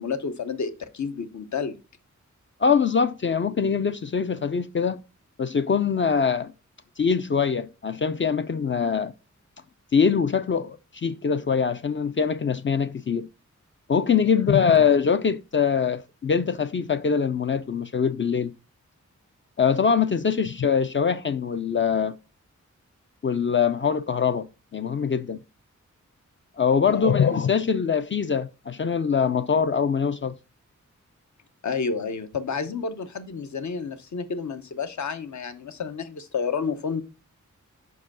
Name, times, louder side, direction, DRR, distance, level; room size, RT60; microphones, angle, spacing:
voice 1, 0.0-1.8 14.3-14.5 26.8-27.1 31.6-37.0, left 5 dB, 65° left, 0.9 m, -30 dB
voice 2, 2.6-5.0 5.4-6.5 7.0-9.1 9.9-13.3 13.9-18.5 19.6-22.1 23.2-24.5 24.7-25.4 26.6-30.3, left 6 dB, 40° left, 0.4 m, -23 dB
5.4 x 4.7 x 6.0 m
wide cardioid pair, 115°, 30 cm